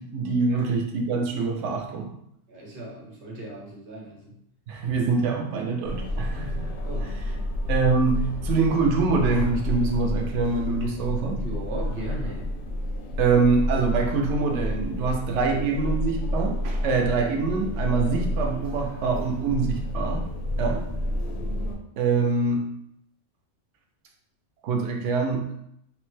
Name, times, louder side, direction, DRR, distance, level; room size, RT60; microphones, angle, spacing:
voice 1, 0.0-2.1 4.7-6.7 7.0-7.1 7.7-11.4 13.2-20.2 20.6-20.8 22.0-22.6 24.6-25.5, right 4 dB, 75° right, 2 dB, 0.9 m, -24 dB
voice 2, 2.5-4.4 6.8-7.1 11.4-12.5 20.6-20.7, right 1 dB, 50° right, -3 dB, 1.0 m, -37 dB
sound 1, 5.8-21.8, left 1 dB, 70° left, 0.8 m, -30 dB
3.3 x 2.1 x 3.1 m, 0.73 s
omnidirectional pair, 1.3 m